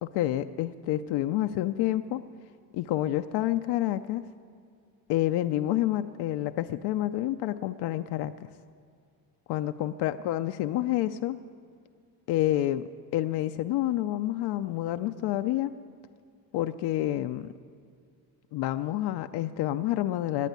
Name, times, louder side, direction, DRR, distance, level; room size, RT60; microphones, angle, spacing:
voice 1, 0.0-2.2 2.7-4.2 5.1-8.3 9.5-11.4 12.3-12.8 13.1-15.7 16.5-17.5 18.5-20.5, left 14 dB, 75° left, 9 dB, 0.5 m, -28 dB
10.5 x 9.1 x 9.3 m, 2.3 s
cardioid pair, 145°, 40 cm